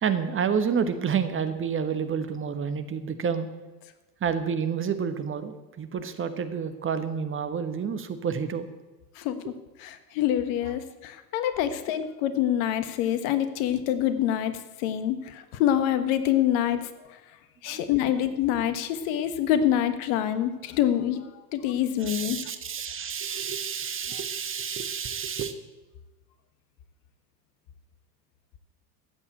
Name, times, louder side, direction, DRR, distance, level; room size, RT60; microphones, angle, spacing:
voice 1, 0.0-3.5 4.2-8.7 17.7-17.8 22.0-25.5, right 7 dB, 25° right, 10 dB, 1.2 m, -29 dB
voice 2, 9.2-9.5 9.8-14.5 14.8-16.9 17.6-22.4, left 11 dB, 55° left, 11 dB, 1.4 m, -26 dB
13.5 x 8.6 x 8.2 m, 1.1 s
figure-of-eight pair, 75°, 49 cm